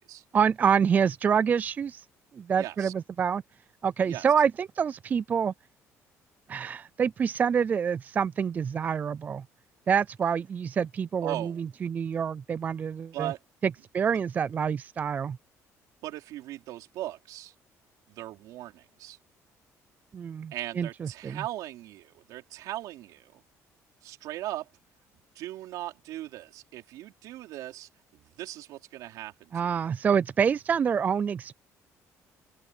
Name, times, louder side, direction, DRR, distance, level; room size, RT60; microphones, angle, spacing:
voice 1, 0.3-2.0 2.3-3.4 3.8-5.5 6.5-9.4 9.9-13.3 13.9-15.4 20.1-21.4 29.5-31.5, right 7 dB, 30° right, 0.3 m, -27 dB
voice 2, 2.5-2.9 4.0-4.3 11.2-11.6 13.1-13.4 16.0-17.5 18.1-19.2 20.5-23.4 24.0-24.7 25.3-29.5, right 15 dB, 80° right, 4.1 m, -38 dB
open air
cardioid pair, 155°, 6 cm